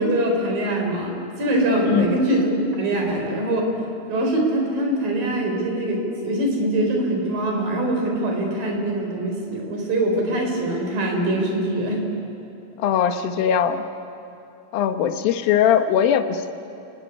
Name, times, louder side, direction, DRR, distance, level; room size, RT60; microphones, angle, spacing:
voice 1, 0.0-2.4 2.7-3.7 4.1-12.0, right 1 dB, 60° right, 2 dB, 5.7 m, -23 dB
voice 2, 12.8-13.8 14.7-16.5, left 9 dB, 75° left, 8 dB, 2.8 m, -20 dB
29.5 x 16.0 x 10.0 m, 2.7 s
omnidirectional pair, 4.5 m